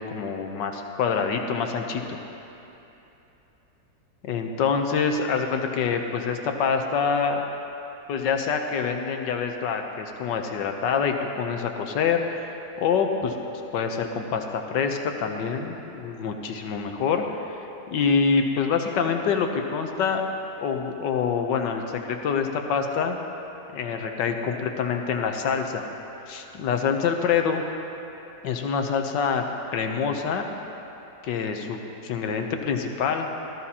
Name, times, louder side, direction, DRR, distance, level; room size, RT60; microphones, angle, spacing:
voice 1, 0.0-2.2 4.2-7.4 8.1-13.3 13.7-20.2 20.6-23.2 23.7-25.9 26.3-27.6 28.4-29.4 29.7-30.5 31.2-33.3, left 6 dB, 85° left, 4 dB, 1.6 m, -26 dB
18.0 x 14.0 x 2.9 m, 2.9 s
omnidirectional pair, 1.9 m